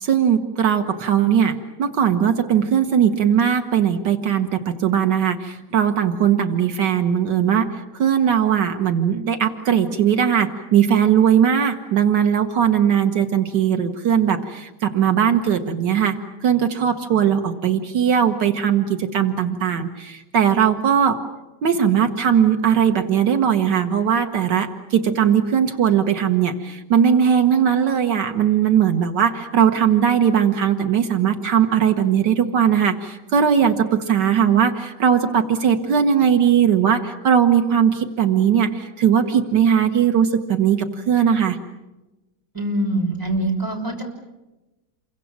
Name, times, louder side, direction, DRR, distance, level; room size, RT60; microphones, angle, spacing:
voice 1, 0.0-7.7 8.0-16.2 16.4-21.2 21.6-41.6, right 8 dB, 80° right, 7 dB, 2.0 m, -19 dB
voice 2, 42.5-44.0, right 1 dB, 10° right, 0 dB, 5.8 m, -23 dB
29.0 x 23.5 x 7.4 m, 1.0 s
omnidirectional pair, 1.8 m